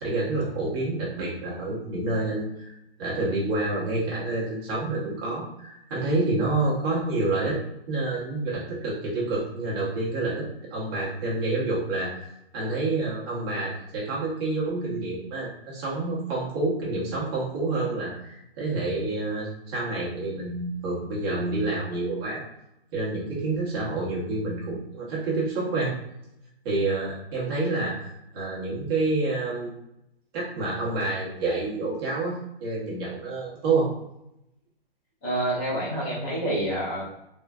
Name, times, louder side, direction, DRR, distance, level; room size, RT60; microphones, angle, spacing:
voice 1, 0.0-7.6 7.9-22.4 22.9-25.9 26.6-29.7 30.3-33.9, right 2 dB, 25° right, -6 dB, 1.0 m, -28 dB
voice 2, 35.2-37.1, right 1 dB, 10° left, -7 dB, 0.4 m, -27 dB
3.4 x 2.4 x 2.3 m, 0.83 s
hypercardioid pair, 150°, 30 cm